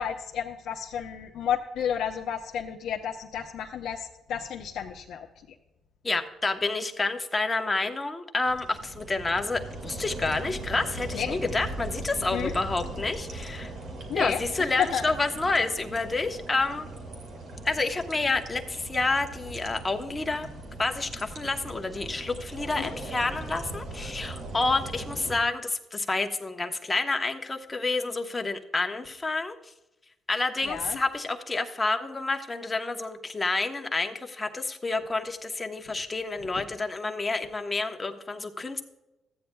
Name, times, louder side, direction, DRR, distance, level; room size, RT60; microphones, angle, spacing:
voice 1, 0.0-5.3 11.1-11.4 12.3-12.5 14.1-15.0 22.8-22.9 30.6-31.0, left 8 dB, 80° left, 1 dB, 0.7 m, -31 dB
voice 2, 6.0-13.7 14.2-16.9 17.6-20.5 20.8-29.7 30.3-38.8, left 3 dB, 20° left, 5 dB, 1.1 m, -29 dB
sound 1, 8.5-25.4, right 2 dB, 65° right, 2.3 m, -39 dB
14.5 x 9.4 x 2.3 m, 0.96 s
cardioid pair, 90°, 0 cm